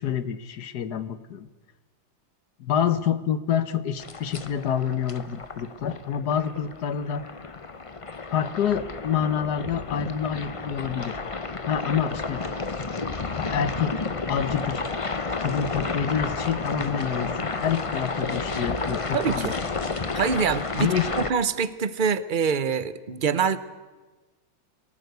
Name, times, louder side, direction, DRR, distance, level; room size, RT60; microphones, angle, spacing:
voice 1, 0.0-1.5 2.6-7.2 8.3-11.2 11.6-12.4 13.3-13.9 14.3-14.8 15.4-19.5 20.8-21.1, left 8 dB, 60° left, 13 dB, 1.5 m, -27 dB
sound 1, 4.0-21.3, left 3 dB, 30° left, 0.6 m, -31 dB
voice 2, 19.1-19.6 20.1-23.6, right 6 dB, 45° right, 14 dB, 0.6 m, -25 dB
22.5 x 18.0 x 8.1 m, 1.3 s
omnidirectional pair, 2.0 m